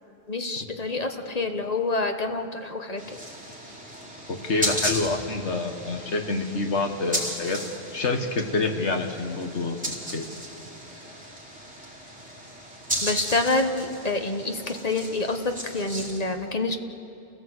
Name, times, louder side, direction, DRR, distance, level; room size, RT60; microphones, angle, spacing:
voice 1, 0.3-3.0 13.0-16.8, left 2 dB, 35° left, 5 dB, 1.2 m, -27 dB
sound 1, 3.0-16.2, equal, 5° right, 3.6 m, -35 dB
voice 2, 4.3-7.6 7.9-9.8 10.1-10.3, left 3 dB, 80° left, 4 dB, 1.8 m, -27 dB
29.5 x 16.0 x 8.0 m, 2.9 s
omnidirectional pair, 1.2 m